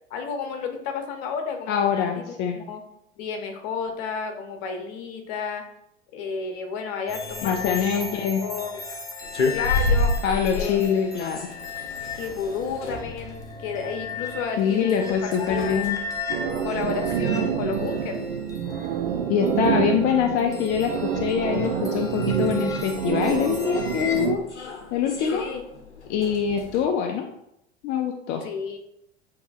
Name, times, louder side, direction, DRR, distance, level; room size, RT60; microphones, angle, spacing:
voice 1, 0.1-2.1 2.5-2.8 3.2-5.6 6.1-8.0 8.4-8.8 9.5-10.2 10.5-10.9 12.1-15.9 16.6-18.2 25.3-25.6 28.4-28.8, left 5 dB, 50° left, 5 dB, 0.8 m, -32 dB
voice 2, 1.7-2.6 7.4-8.4 10.2-11.4 14.6-16.0 19.3-24.4 24.9-25.4 26.1-27.3 27.8-28.4, left 7 dB, 30° left, 4 dB, 0.4 m, -24 dB
sound 1, 7.1-24.3, left 4 dB, 10° left, 0.7 m, -36 dB
sound 2, 9.2-26.9, left 2 dB, 90° left, 0.6 m, -33 dB
sound 3, 16.3-24.4, right 8 dB, 70° right, 0.5 m, -27 dB
6.8 x 2.7 x 2.4 m, 0.80 s
figure-of-eight pair, 80°, 33 cm